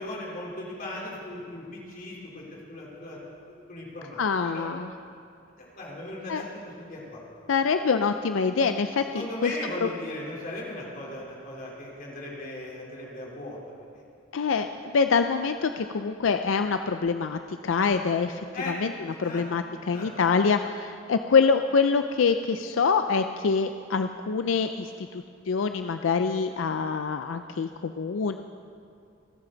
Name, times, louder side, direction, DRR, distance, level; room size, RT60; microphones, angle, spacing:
voice 1, 0.0-3.2 3.7-4.7 5.5-7.4 9.1-13.6 13.9-14.0 18.5-18.7 19.1-19.4 19.8-20.1 20.6-20.7, left 1 dB, 45° left, -4 dB, 3.7 m, -38 dB
voice 2, 4.2-4.9 6.3-6.4 7.5-9.5 9.8-9.9 14.3-14.7 14.9-18.9 19.2-28.4, left 5 dB, 85° left, 8 dB, 0.5 m, -25 dB
27.5 x 9.1 x 3.9 m, 2.5 s
head